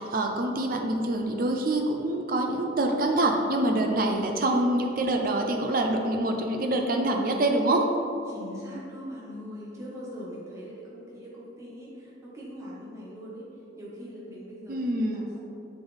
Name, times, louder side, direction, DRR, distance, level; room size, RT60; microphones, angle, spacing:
voice 1, 0.0-7.9 14.7-15.3, right 1 dB, 45° right, 3 dB, 0.6 m, -25 dB
voice 2, 8.3-13.5 13.8-15.4, equal, 15° right, -7 dB, 1.4 m, -41 dB
7.0 x 6.0 x 3.5 m, 2.8 s
head